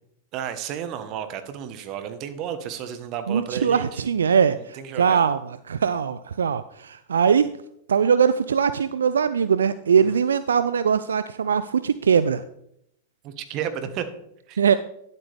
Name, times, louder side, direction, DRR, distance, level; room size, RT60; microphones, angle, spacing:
voice 1, 0.3-4.0 4.6-5.2 10.0-10.1 13.2-14.1 14.5-14.6, right 8 dB, 45° right, 10 dB, 1.2 m, -32 dB
voice 2, 3.3-7.5 7.9-12.4 14.6-14.8, right 7 dB, 80° right, 13 dB, 0.3 m, -21 dB
10.5 x 8.0 x 3.4 m, 0.77 s
hypercardioid pair, 100°, 0 cm